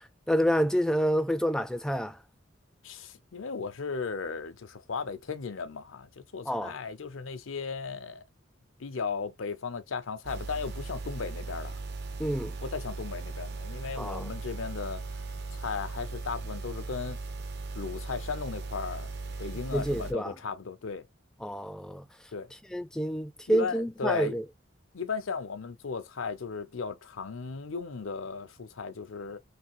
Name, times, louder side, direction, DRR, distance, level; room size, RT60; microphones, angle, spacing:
voice 1, 0.0-2.2 6.5-6.8 12.2-12.6 14.0-14.3 19.7-20.3 21.4-22.1 22.7-24.4, equal, 5° left, 0.3 m, -28 dB
voice 2, 2.8-8.2 8.8-11.8 12.4-15.0 15.5-17.2 17.7-19.1 19.4-21.1 22.3-22.5 23.5-24.4 24.9-29.4, left 5 dB, 85° left, 0.6 m, -36 dB
sound 1, 10.3-20.1, right 3 dB, 55° right, 0.6 m, -38 dB
3.3 x 2.7 x 3.0 m
head